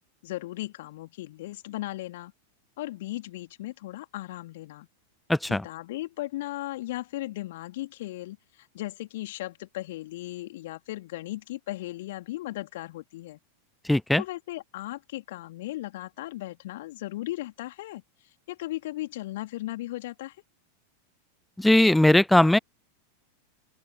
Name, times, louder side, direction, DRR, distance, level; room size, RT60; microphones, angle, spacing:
voice 1, 0.2-2.3 2.8-4.9 5.5-13.4 14.2-18.0 18.5-20.4, left 17 dB, 55° left, 3.5 m, -36 dB
voice 2, 5.3-5.6 13.9-14.2 21.6-22.6, left 1 dB, 5° left, 0.4 m, -19 dB
open air
figure-of-eight pair, 90°, 0 cm